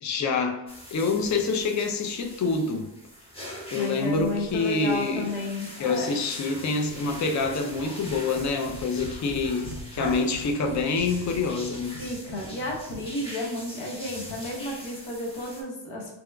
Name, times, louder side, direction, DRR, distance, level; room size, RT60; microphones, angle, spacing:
voice 1, 0.0-0.6 0.9-2.9 3.7-5.3 5.8-12.0, left 4 dB, 40° left, 0.4 m, -26 dB
sound 1, 0.7-15.6, equal, 10° left, 0.9 m, -43 dB
voice 2, 3.7-6.1 10.0-10.2 12.0-16.1, left 1 dB, 70° left, 1.0 m, -32 dB
sound 2, 6.8-13.2, right 2 dB, 30° right, 0.5 m, -43 dB
3.5 x 2.9 x 2.2 m
cardioid pair, 90°, 47 cm